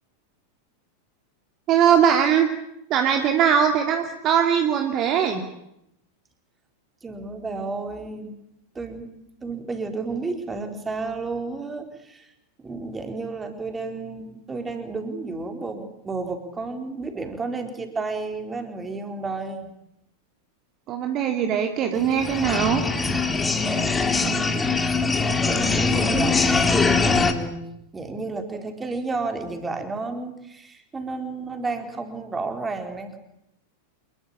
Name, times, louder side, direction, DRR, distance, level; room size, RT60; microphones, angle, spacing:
voice 1, 1.7-2.5 2.9-5.5 20.9-22.8, right 8 dB, 35° right, 5 dB, 2.7 m, -21 dB
voice 2, 7.0-8.4 8.7-9.1 9.4-12.3 12.6-19.7 23.8-23.9 24.2-27.6 27.9-33.2, right 3 dB, 15° right, 5 dB, 4.4 m, -32 dB
sound 1, 22.0-27.3, left 4 dB, 15° left, 2.9 m, -22 dB
27.5 x 21.5 x 8.8 m, 0.80 s
figure-of-eight pair, 90°, 0 cm